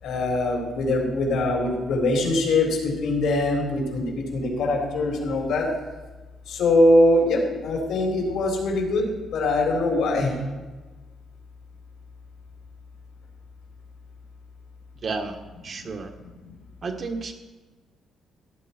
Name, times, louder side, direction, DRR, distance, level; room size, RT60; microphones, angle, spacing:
voice 1, 0.0-5.7 6.5-10.3 15.8-15.9 16.4-16.5, left 1 dB, 80° left, 0 dB, 3.9 m, -22 dB
voice 2, 15.0-15.4 15.6-16.1 16.8-17.3, right 4 dB, 45° right, 5 dB, 1.6 m, -31 dB
17.0 x 9.3 x 4.6 m, 1.2 s
cardioid pair, 90°, 0 cm